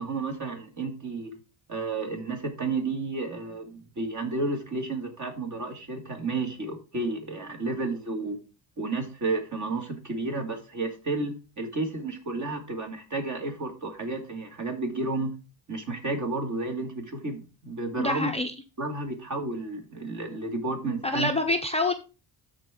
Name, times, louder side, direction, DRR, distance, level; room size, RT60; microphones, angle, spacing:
voice 1, 0.0-1.3 1.7-8.4 8.8-15.3 15.7-18.3 18.8-21.3, right 3 dB, 40° right, 3 dB, 2.4 m, -31 dB
voice 2, 18.0-18.5 21.0-21.9, left 2 dB, 15° left, 3 dB, 0.6 m, -26 dB
13.0 x 4.4 x 3.7 m, 0.32 s
cardioid pair, 130°, 46 cm